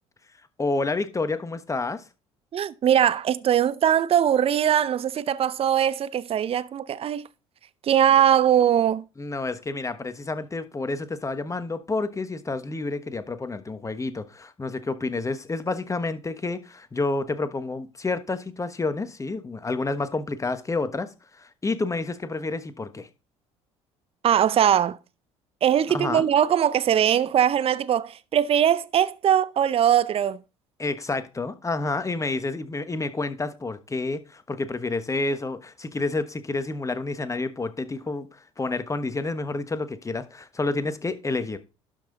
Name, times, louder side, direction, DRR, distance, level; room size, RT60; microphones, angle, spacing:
voice 1, 0.6-2.0 9.2-23.1 25.9-26.2 30.8-41.6, left 3 dB, 20° left, 1.3 m, -29 dB
voice 2, 2.5-7.2 7.8-9.0 24.2-25.0 25.6-30.4, right 9 dB, 40° right, 0.6 m, -21 dB
12.0 x 5.8 x 4.0 m
hypercardioid pair, 60°, 16 cm